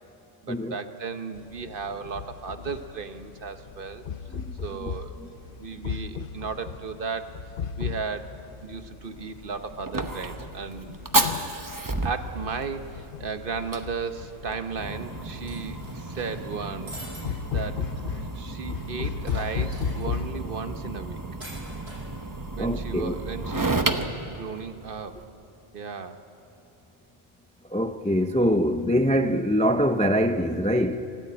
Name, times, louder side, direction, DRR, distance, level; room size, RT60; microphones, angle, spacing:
voice 1, 0.4-4.0 4.6-5.1 5.6-7.4 7.8-8.4 8.6-11.0 12.0-21.2 22.6-23.9 24.3-25.2 25.7-26.3, right 5 dB, 60° right, 1.1 m, -35 dB
sound 1, 1.4-20.9, left 6 dB, 60° left, 0.8 m, -36 dB
voice 2, 4.3-4.9 5.2-5.3 5.7-5.8 22.6-23.2 27.7-31.0, equal, 10° left, 0.4 m, -24 dB
Fire, 9.0-25.2, right 2 dB, 20° right, 0.9 m, -32 dB
sound 2, 15.5-16.4 16.9-17.2 17.6-17.7 18.0-18.1 19.2-20.1 21.4-22.0, right 1 dB, 80° right, 7.7 m, -43 dB
26.5 x 13.5 x 8.6 m
omnidirectional pair, 1.1 m